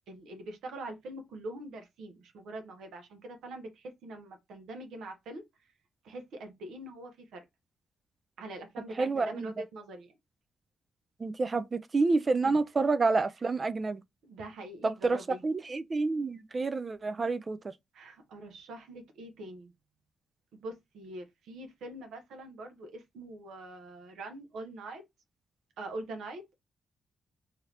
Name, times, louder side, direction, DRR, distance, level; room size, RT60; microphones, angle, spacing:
voice 1, 0.1-5.4 6.0-7.4 8.4-10.1 12.4-12.5 14.2-15.4 17.9-19.7 20.5-25.0 25.8-26.6, right 2 dB, 80° right, 0.8 m, -43 dB
voice 2, 9.0-9.5 11.2-14.0 14.8-17.7, right 3 dB, 40° right, 0.4 m, -29 dB
2.7 x 2.5 x 3.2 m
supercardioid pair, 55°, 0 cm